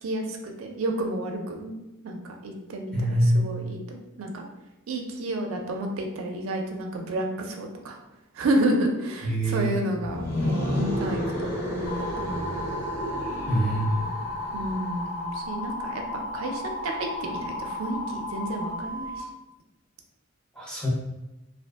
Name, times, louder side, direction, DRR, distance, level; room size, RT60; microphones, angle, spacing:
voice 1, 0.0-1.7 2.0-4.4 4.9-8.0 8.3-12.6 14.5-19.1, right 1 dB, 85° right, 3 dB, 0.4 m, -30 dB
voice 2, 2.9-3.5 9.2-9.7 13.5-13.9 20.6-20.9, right 1 dB, 5° left, -5 dB, 0.5 m, -24 dB
sound 1, 10.0-15.0, left 1 dB, 45° left, 0.9 m, -31 dB
sound 2, 11.9-19.2, left 1 dB, 85° left, 0.7 m, -34 dB
2.5 x 2.4 x 2.4 m, 0.96 s
head